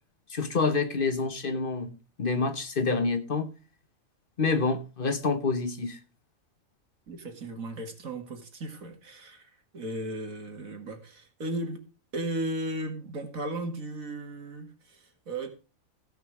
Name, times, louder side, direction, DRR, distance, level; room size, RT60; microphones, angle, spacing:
voice 1, 0.3-3.5 4.4-6.0, left 4 dB, 45° left, 1.1 m, -27 dB
voice 2, 7.1-11.8 12.1-15.5, right 1 dB, 90° right, 2.5 m, -36 dB
16.5 x 5.7 x 4.7 m
omnidirectional pair, 1.4 m